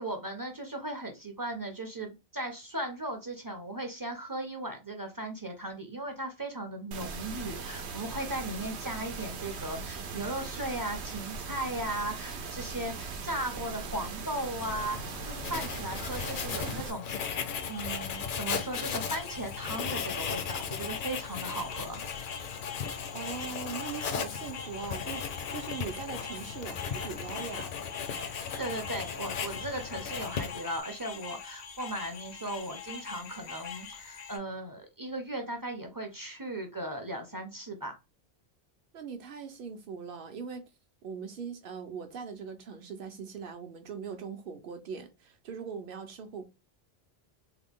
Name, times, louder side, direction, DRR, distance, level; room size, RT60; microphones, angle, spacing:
voice 1, 0.0-22.0 28.3-37.9, right 1 dB, 25° right, 0.5 m, -37 dB
sound 1, 6.9-16.9, right 5 dB, 85° right, 0.9 m, -39 dB
Writing, 14.6-30.8, left 7 dB, 60° left, 0.6 m, -37 dB
sound 2, 17.5-34.4, left 6 dB, 85° left, 1.0 m, -44 dB
voice 2, 23.1-27.7 38.9-40.7 41.0-46.5, right 6 dB, 60° right, 0.8 m, -41 dB
3.3 x 2.2 x 3.5 m
omnidirectional pair, 1.1 m